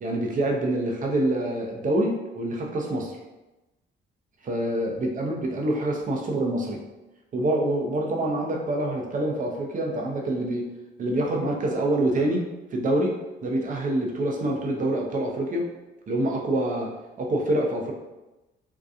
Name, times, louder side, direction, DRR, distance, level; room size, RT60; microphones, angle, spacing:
voice 1, 0.0-3.2 4.4-6.8 7.3-10.7 11.0-12.4 12.7-13.1 13.4-15.7 16.1-16.9 17.2-17.9, right 1 dB, 40° right, 1 dB, 0.6 m, -26 dB
2.7 x 2.2 x 2.4 m, 1.0 s
cardioid pair, 90°, 20 cm